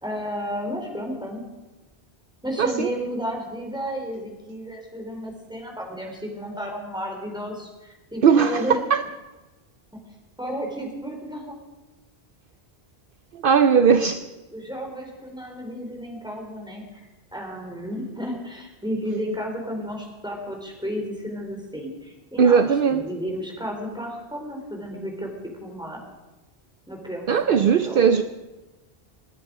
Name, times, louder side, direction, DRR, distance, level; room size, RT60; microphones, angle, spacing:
voice 1, 0.0-1.5 2.4-8.8 10.4-11.6 14.0-14.1 14.5-25.3 25.6-26.0 26.9-28.1, equal, 5° right, 0 dB, 3.5 m, -32 dB
voice 2, 2.6-2.9 8.2-8.7 8.9-9.0 13.3-14.2 22.4-23.0 27.3-28.2, right 6 dB, 60° right, 10 dB, 0.8 m, -18 dB
27.5 x 9.9 x 4.9 m, 1.1 s
omnidirectional pair, 1.1 m